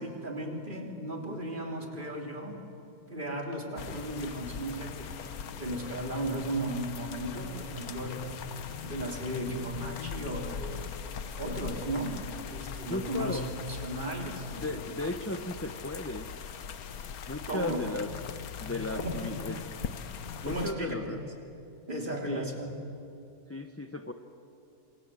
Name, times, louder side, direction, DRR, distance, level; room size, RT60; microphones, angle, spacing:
voice 1, 0.0-2.6 3.1-8.4 8.8-10.8 11.4-13.4 13.7-14.8 17.5-17.8 18.9-19.4 20.5-21.2 21.9-22.7, right 1 dB, 35° right, 2 dB, 3.7 m, -35 dB
sound 1, 3.8-20.7, left 7 dB, 85° left, 1.5 m, -40 dB
voice 2, 12.9-13.5 14.2-16.3 17.3-18.1 18.6-19.6 20.4-21.2 22.2-22.5 23.5-24.1, left 2 dB, 10° left, 7 dB, 0.9 m, -36 dB
27.5 x 27.0 x 7.8 m, 2.8 s
omnidirectional pair, 1.5 m